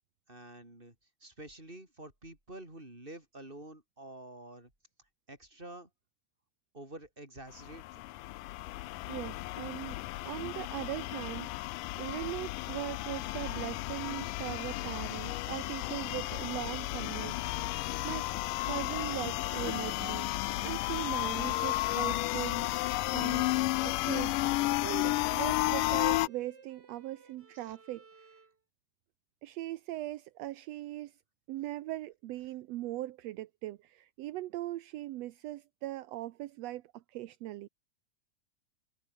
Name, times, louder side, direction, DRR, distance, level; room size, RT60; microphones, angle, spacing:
voice 1, 0.3-0.9 1.2-4.7 5.3-5.9 6.7-8.1 14.2-14.3 27.5-27.7, right 1 dB, 15° right, 6.4 m, -48 dB
sound 1, 7.5-26.3, left 19 dB, 85° left, 2.3 m, -33 dB
voice 2, 8.6-10.0 10.2-18.2 18.6-22.7 23.1-23.5 23.8-28.3 29.4-31.2 31.5-37.7, right 15 dB, 75° right, 1.6 m, -40 dB
Bowed string instrument, 16.4-28.6, right 4 dB, 30° right, 3.4 m, -59 dB
omnidirectional pair, 3.7 m